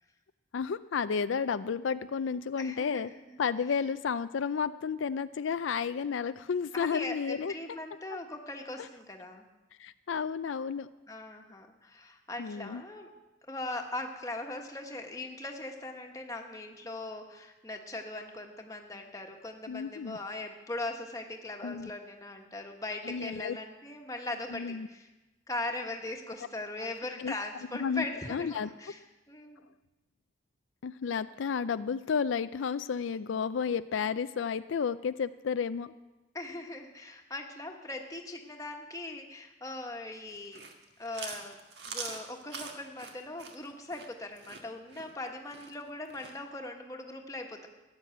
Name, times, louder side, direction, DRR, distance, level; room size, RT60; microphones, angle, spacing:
voice 1, 0.5-3.1 3.4-7.5 9.8-10.9 12.4-12.8 19.7-20.2 21.6-21.9 23.0-23.6 24.5-24.9 27.2-27.3 27.8-28.7 30.8-35.9, left 6 dB, 80° left, 13 dB, 0.4 m, -32 dB
voice 2, 2.6-3.4 6.7-9.4 11.1-13.1 13.5-25.1 25.5-29.7 36.3-40.6 41.0-41.6 41.9-47.7, left 2 dB, 15° left, 3 dB, 1.4 m, -40 dB
Chewing mastication, 40.3-46.4, right 5 dB, 55° right, 1.7 m, -43 dB
14.5 x 10.5 x 7.8 m, 1.1 s
head